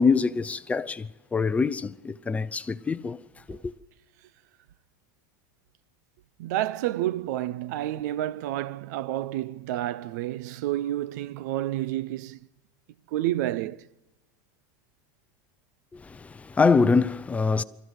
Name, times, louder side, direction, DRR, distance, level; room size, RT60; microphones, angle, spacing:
voice 1, 0.0-3.2 3.5-3.7 15.9-17.6, left 4 dB, 15° left, 0.7 m, -24 dB
voice 2, 6.4-12.4 13.1-13.9, right 14 dB, 70° right, 0.7 m, -30 dB
25.0 x 14.5 x 8.2 m
supercardioid pair, 130°, 10 cm